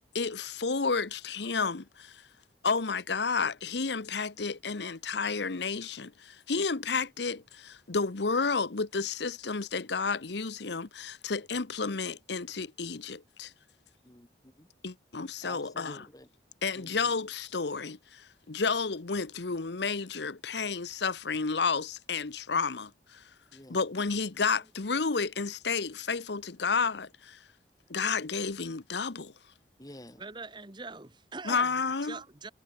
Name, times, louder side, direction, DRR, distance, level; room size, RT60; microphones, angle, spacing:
voice 1, 0.1-2.3 2.6-13.5 14.8-16.1 16.6-23.3 23.7-27.4 27.9-29.3 31.4-32.2, left 4 dB, 70° left, 0.9 m, -31 dB
voice 2, 14.0-14.7 15.4-16.3 16.7-17.0 23.5-23.8 29.8-30.2, left 1 dB, 20° left, 2.7 m, -50 dB
voice 3, 30.2-31.7 32.0-32.5, right 3 dB, 25° right, 1.5 m, -42 dB
head